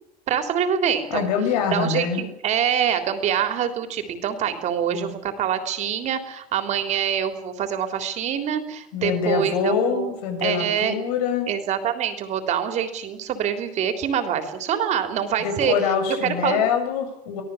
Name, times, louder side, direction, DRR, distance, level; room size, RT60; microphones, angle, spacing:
voice 1, 0.3-1.3 1.7-10.1 10.4-11.0 11.5-16.6, right 8 dB, 35° right, 7 dB, 3.5 m, -25 dB
voice 2, 1.1-2.2 4.9-5.1 8.9-11.5 15.4-17.4, left 6 dB, 85° left, 6 dB, 7.7 m, -24 dB
25.0 x 17.5 x 7.3 m, 0.75 s
cardioid pair, 160°, 19 cm